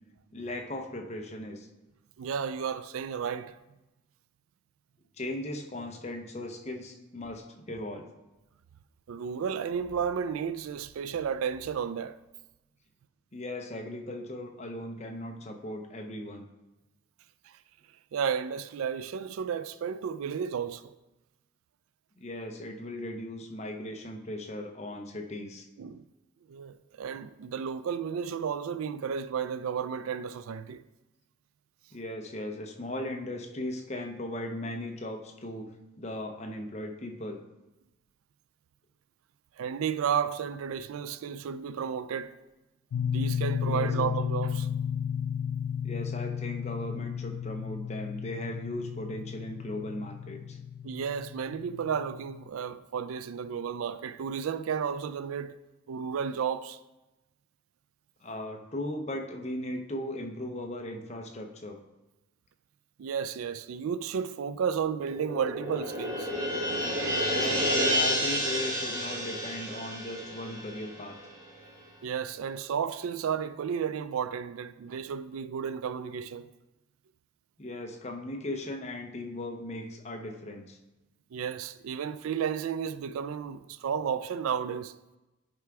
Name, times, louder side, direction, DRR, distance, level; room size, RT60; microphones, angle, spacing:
voice 1, 0.3-1.7 5.2-8.1 13.3-16.5 22.2-25.7 31.9-37.4 43.6-43.9 45.8-50.6 58.2-61.8 67.3-71.2 77.6-80.8, left 1 dB, 30° left, 0.7 m, -37 dB
voice 2, 2.2-3.6 9.1-12.2 18.1-20.9 25.8-26.0 26.5-30.8 39.6-42.3 43.0-44.7 50.8-55.6 55.9-56.8 63.0-66.3 72.0-76.5 81.3-84.9, right 7 dB, 80° right, 0.3 m, -32 dB
sound 1, 42.9-52.5, left 8 dB, 90° left, 0.3 m, -33 dB
sound 2, 64.9-71.5, equal, 15° right, 1.4 m, -30 dB
10.5 x 3.5 x 4.7 m
head